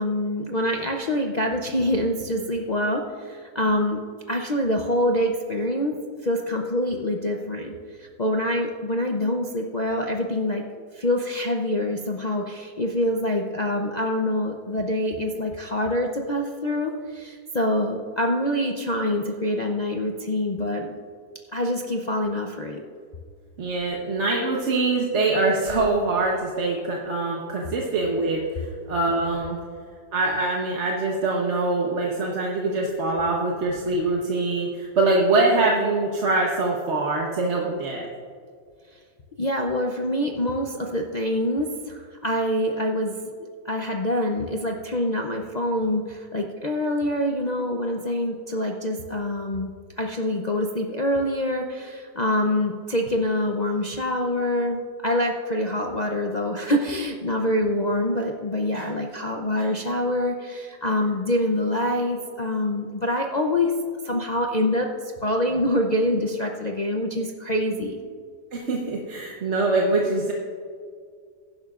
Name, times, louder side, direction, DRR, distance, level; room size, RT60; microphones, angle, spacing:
voice 1, 0.0-4.0 4.3-6.0 6.2-10.6 10.9-21.0 21.5-22.8 38.9-39.0 39.4-63.7 64.0-68.0, left 1 dB, 60° left, 0 dB, 0.4 m, -25 dB
voice 2, 23.6-29.6 30.1-38.1 58.7-58.8 59.6-59.7 68.5-70.3, right 2 dB, 45° right, -2 dB, 1.3 m, -24 dB
16.5 x 11.0 x 2.5 m, 2.1 s
omnidirectional pair, 1.8 m